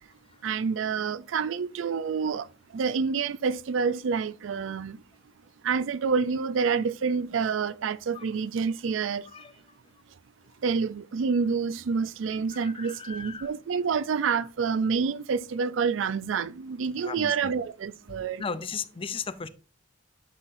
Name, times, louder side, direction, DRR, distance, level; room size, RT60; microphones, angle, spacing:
voice 1, 0.4-5.0 5.6-9.3 10.6-18.4, right 5 dB, 70° right, 0.4 m, -28 dB
voice 2, 9.3-9.8 12.5-13.5 17.0-17.5 18.1-19.5, left 5 dB, 30° left, 0.4 m, -37 dB
9.8 x 5.8 x 2.6 m
head